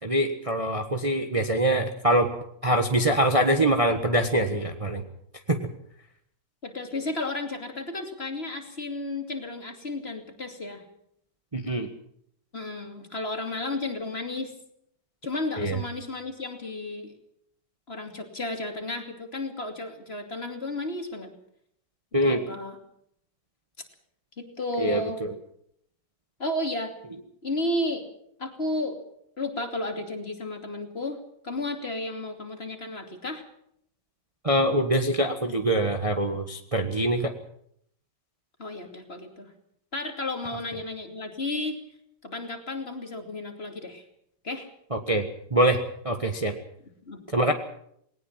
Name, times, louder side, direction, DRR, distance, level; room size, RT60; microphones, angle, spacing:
voice 1, 0.0-2.3 2.6-5.0 5.5-5.6 11.5-11.9 15.6-15.8 22.1-22.4 24.8-25.3 34.4-37.3 44.9-45.2 45.5-45.8 46.0-46.5 47.3-47.5, right 1 dB, 20° right, 5 dB, 1.3 m, -24 dB
voice 2, 6.6-10.8 12.5-14.5 15.2-17.1 17.9-21.3 22.2-22.8 24.4-25.2 26.4-27.0 27.4-28.1 28.4-29.0 29.4-33.5 38.6-39.5 39.9-41.8 42.2-44.0 44.4-44.7 47.0-47.2, left 2 dB, 35° left, 4 dB, 2.9 m, -33 dB
20.0 x 19.0 x 7.4 m, 0.70 s
omnidirectional pair, 2.0 m